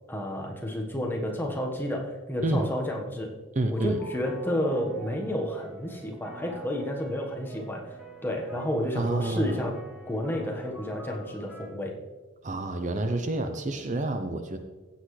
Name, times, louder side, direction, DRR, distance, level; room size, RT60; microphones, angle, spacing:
voice 1, 0.1-3.3 3.7-8.0 8.2-9.8 10.1-12.0, left 1 dB, 10° left, 0 dB, 1.3 m, -31 dB
voice 2, 3.5-4.0 8.9-9.6 12.4-14.6, right 2 dB, 40° right, 7 dB, 0.6 m, -28 dB
sound 1, 3.8-11.7, right 1 dB, 5° right, 2.6 m, -47 dB
16.0 x 8.0 x 3.2 m, 1.3 s
head